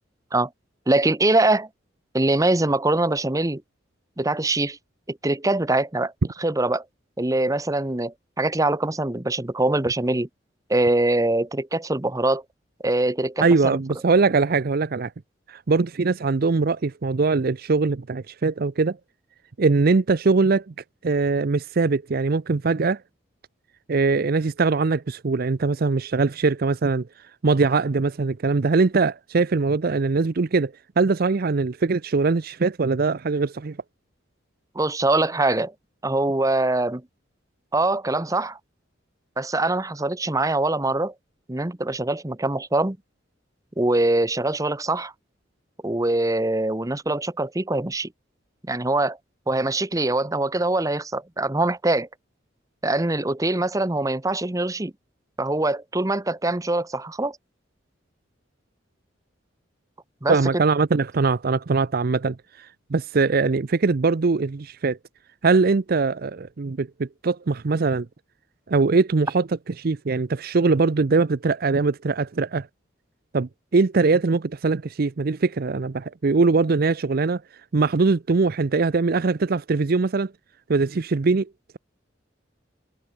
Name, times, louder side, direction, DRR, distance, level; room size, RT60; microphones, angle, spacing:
voice 1, 0.9-1.7 2.1-3.6 4.2-4.8 5.1-6.1 6.4-6.8 7.2-10.3 10.7-12.4 12.8-13.8 34.7-35.7 36.0-37.0 37.7-38.6 39.4-41.1 41.5-43.0 43.8-45.1 45.8-48.1 48.6-49.2 49.5-52.1 52.8-54.9 55.4-57.4 60.2-60.4, right 2 dB, 15° right, 0.9 m, -23 dB
voice 2, 13.4-15.1 15.5-19.0 19.6-20.7 21.0-23.0 23.9-27.1 27.4-33.8 60.3-65.0 65.4-68.1 68.7-69.5 69.8-72.7 73.3-77.4 77.7-80.3 80.7-81.5, right 4 dB, 50° right, 0.5 m, -22 dB
head